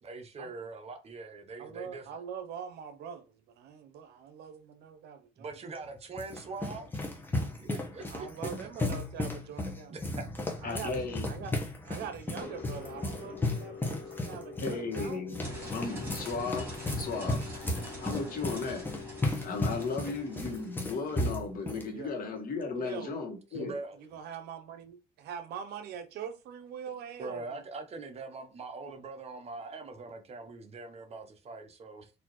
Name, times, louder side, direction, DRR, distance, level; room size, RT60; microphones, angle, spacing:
voice 1, 0.0-2.2 5.4-6.9 7.6-8.3 9.9-10.3 23.5-24.0 27.2-32.1, right 3 dB, 40° right, 0.8 m, -42 dB
voice 2, 1.6-5.6 8.1-10.0 10.6-11.5 11.8-15.2 17.8-18.4 21.9-22.2 22.7-23.3 24.0-27.6, right 8 dB, 75° right, 0.7 m, -43 dB
sound 1, 5.7-21.9, left 2 dB, 10° left, 1.0 m, -35 dB
voice 3, 10.6-11.3 14.6-17.4 18.0-18.9 19.4-23.7, left 4 dB, 55° left, 1.4 m, -35 dB
sound 2, 12.4-23.3, left 6 dB, 90° left, 1.7 m, -47 dB
sound 3, 15.4-21.2, right 1 dB, 15° right, 2.0 m, -47 dB
4.2 x 2.7 x 3.0 m
cardioid pair, 110°, 17 cm